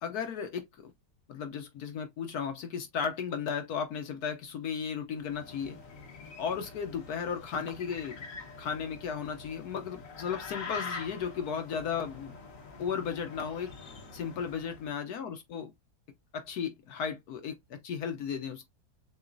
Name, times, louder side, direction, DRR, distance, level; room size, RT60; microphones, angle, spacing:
voice 1, 0.0-0.9 1.3-5.8 6.4-8.3 8.6-12.3 12.8-13.7 14.1-15.7 16.3-18.7, left 7 dB, 70° left, 1.2 m, -35 dB
sound 1, 5.2-14.9, left 4 dB, 55° left, 1.6 m, -45 dB
6.8 x 2.4 x 2.5 m
omnidirectional pair, 1.8 m